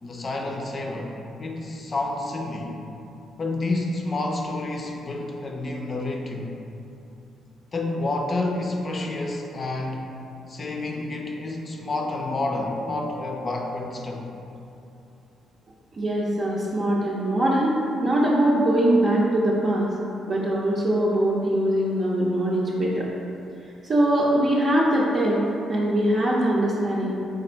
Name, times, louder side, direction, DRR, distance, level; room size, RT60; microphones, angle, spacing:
voice 1, 0.0-2.8 3.4-6.5 7.7-10.1 10.5-14.3, left 2 dB, 35° left, 1 dB, 0.5 m, -29 dB
voice 2, 16.0-19.9 20.2-23.0 23.9-25.4 25.7-27.2, right 1 dB, 45° right, -7 dB, 0.6 m, -22 dB
4.0 x 2.5 x 4.3 m, 2.8 s
cardioid pair, 90°, 0 cm